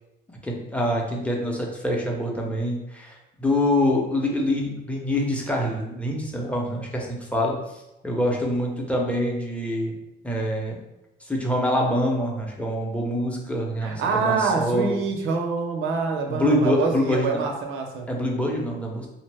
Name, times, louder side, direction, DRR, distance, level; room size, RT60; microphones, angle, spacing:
voice 1, 0.4-7.5 8.0-10.0 10.2-10.8 11.3-14.9 16.3-17.4 18.1-19.1, left 1 dB, 5° left, -1 dB, 0.7 m, -25 dB
voice 2, 13.8-18.1, right 4 dB, 90° right, 2 dB, 0.6 m, -26 dB
2.9 x 2.1 x 3.3 m, 0.92 s
cardioid pair, 90°, 20 cm